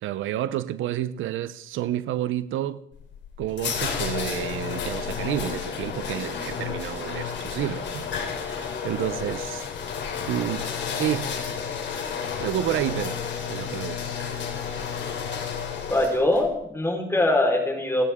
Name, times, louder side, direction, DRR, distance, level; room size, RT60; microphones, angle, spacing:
voice 1, 0.0-2.8 3.4-9.7 10.3-10.7 11.0-11.3 12.4-13.2 13.5-14.0, right 12 dB, 85° right, 0.8 m, -30 dB
sound 1, 2.9-16.5, left 6 dB, 65° left, 3.2 m, -31 dB
voice 2, 15.9-18.0, left 1 dB, 10° left, 4.3 m, -22 dB
29.0 x 10.0 x 3.7 m
cardioid pair, 90°, 20 cm